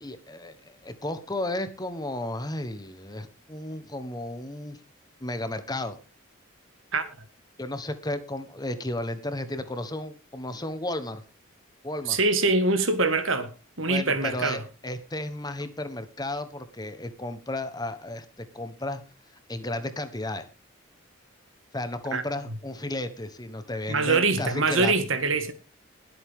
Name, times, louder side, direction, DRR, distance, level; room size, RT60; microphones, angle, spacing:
voice 1, 0.0-4.8 5.2-6.0 7.6-11.2 11.8-12.2 13.9-19.0 19.5-20.5 21.7-24.9, left 1 dB, 20° left, 1.2 m, -33 dB
voice 2, 12.1-14.6 22.1-22.2 23.9-25.5, right 3 dB, 70° right, 1.9 m, -24 dB
21.0 x 8.1 x 3.7 m
head